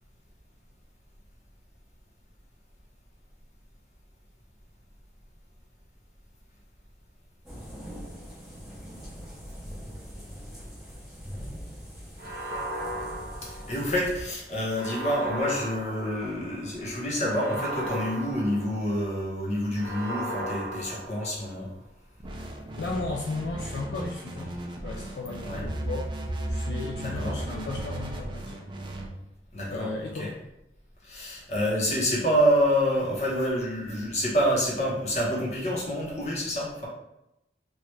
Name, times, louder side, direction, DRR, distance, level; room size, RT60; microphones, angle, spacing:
sound 1, 7.4-14.3, equal, ahead, 0.8 m, -42 dB
sound 2, 12.2-14.0 14.7-16.5 17.2-19.1 19.7-21.6, right 1 dB, 55° right, 0.7 m, -36 dB
voice 1, 13.4-21.7 25.4-25.6 27.0-27.4 29.5-29.9 30.1-30.3 31.0-36.9, equal, 40° left, -5 dB, 0.9 m, -27 dB
sound 3, 22.2-29.1, right 1 dB, 25° right, 0.4 m, -35 dB
voice 2, 22.8-24.6 24.8-26.1 26.5-28.6 29.7-30.4, left 3 dB, 70° left, -1 dB, 0.3 m, -35 dB
3.1 x 2.4 x 3.1 m, 0.88 s
head